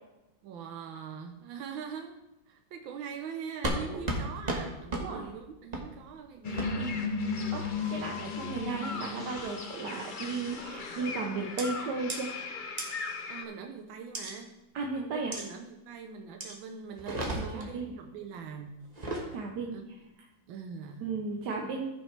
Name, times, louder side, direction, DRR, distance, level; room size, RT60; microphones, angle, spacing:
voice 1, 0.4-2.2 2.5-7.0 7.8-8.0 13.3-14.5 15.0-18.8 19.3-19.4 19.7-19.8 20.5-21.1, right 6 dB, 85° right, 4 dB, 1.6 m, -43 dB
sound 1, 3.6-3.8 4.1-4.2 4.5-4.6 4.9-5.1 5.7-5.9 6.6-6.7 7.6-8.0 8.6-8.9 9.4-9.7 10.5-10.8 11.6-11.7 12.1-12.2 12.8-12.9 14.1-14.3 15.3-15.5 16.4-16.6 17.0-17.7 18.9-19.3, right 1 dB, 25° right, 1.2 m, -34 dB
voice 2, 4.9-5.3 6.7-6.9 7.5-7.6 7.9-12.3 14.7-15.4 17.3-17.9 19.3-19.8 21.0-21.9, right 4 dB, 65° right, 1 dB, 1.4 m, -35 dB
sound 2, 6.4-13.4, left 4 dB, 85° left, 0.4 m, -36 dB
14.5 x 6.1 x 3.3 m, 1.0 s
omnidirectional pair, 2.1 m